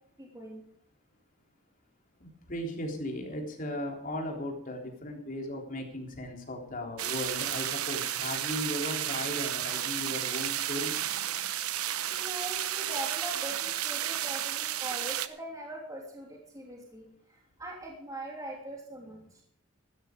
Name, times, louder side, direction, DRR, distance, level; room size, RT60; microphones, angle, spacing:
voice 1, 0.2-0.6 12.1-19.4, right 1 dB, 15° right, -1 dB, 3.0 m, -42 dB
voice 2, 2.2-11.1, left 1 dB, 40° left, 2 dB, 3.5 m, -37 dB
sound 1, 7.0-15.3, right 11 dB, 90° right, 0.9 m, -32 dB
15.5 x 12.5 x 5.1 m, 0.65 s
head